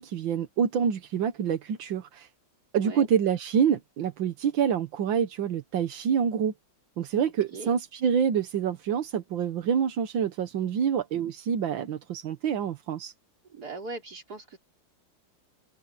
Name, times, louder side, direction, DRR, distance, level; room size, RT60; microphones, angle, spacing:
voice 1, 0.0-2.3 2.7-6.5 7.0-13.1, right 8 dB, 85° right, 1.9 m, -27 dB
voice 2, 2.7-3.1 7.5-7.7 13.5-14.6, right 3 dB, 55° right, 4.3 m, -39 dB
omnidirectional pair, 2.0 m